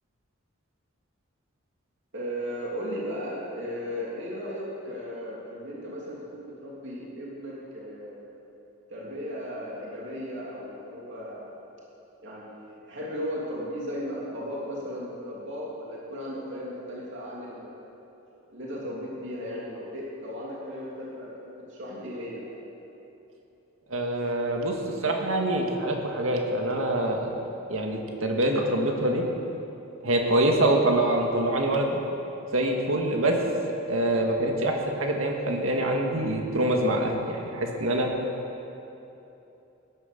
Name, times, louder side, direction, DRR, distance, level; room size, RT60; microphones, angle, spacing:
voice 1, 2.1-8.3 8.9-11.5 12.2-17.9 18.5-22.5, equal, 65° right, -5 dB, 3.1 m, -36 dB
voice 2, 23.9-24.8 25.0-27.3 27.7-29.3 30.0-32.0 32.5-33.4 33.9-38.1, right 1 dB, 90° right, 1 dB, 2.0 m, -25 dB
17.0 x 11.0 x 6.9 m, 3.0 s
head